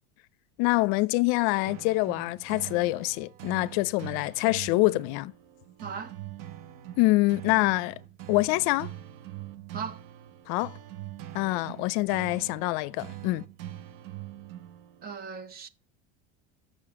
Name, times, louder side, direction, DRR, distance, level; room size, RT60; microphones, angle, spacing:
voice 1, 0.6-5.3 7.0-8.0 8.3-8.9 10.5-10.8 11.3-13.4, left 22 dB, 65° left, 0.6 m, -25 dB
sound 1, 1.6-15.2, right 13 dB, 75° right, 0.8 m, -43 dB
voice 2, 5.8-6.1 9.7-10.0 15.0-15.7, right 6 dB, 30° right, 0.8 m, -37 dB
6.9 x 6.3 x 7.3 m
supercardioid pair, 135°, 29 cm